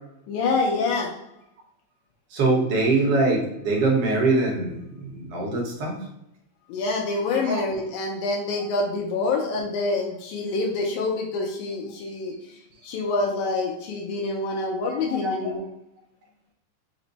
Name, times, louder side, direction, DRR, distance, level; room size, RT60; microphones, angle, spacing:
voice 1, 0.3-1.1 6.7-12.3 12.8-15.6, left 3 dB, 85° left, 0 dB, 2.1 m, -26 dB
voice 2, 2.3-6.0 7.4-7.6 14.9-15.5, right 3 dB, 60° right, -1 dB, 1.6 m, -23 dB
5.1 x 2.1 x 3.9 m, 0.83 s
omnidirectional pair, 3.4 m